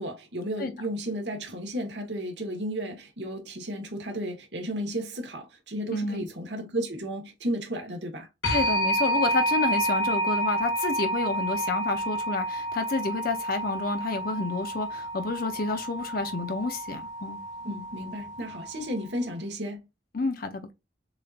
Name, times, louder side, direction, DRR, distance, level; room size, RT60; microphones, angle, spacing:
voice 1, 0.0-8.3 17.6-19.9, equal, 75° right, 1.5 m, -33 dB
voice 2, 5.9-6.2 8.5-17.4 20.1-20.7, left 3 dB, 55° left, 0.7 m, -29 dB
sound 1, 8.4-19.1, right 1 dB, 85° left, 1.8 m, -30 dB
6.9 x 2.7 x 2.4 m
head